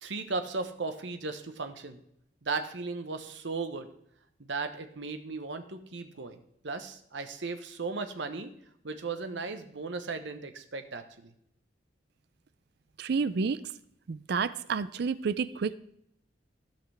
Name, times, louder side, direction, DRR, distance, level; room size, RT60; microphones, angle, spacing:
voice 1, 0.0-2.0 2.4-3.9 4.4-8.5 8.8-11.3, right 4 dB, 80° right, 8 dB, 1.0 m, -36 dB
voice 2, 13.0-13.6 14.1-15.7, right 5 dB, 60° right, 16 dB, 0.4 m, -30 dB
15.5 x 5.9 x 3.4 m, 0.73 s
head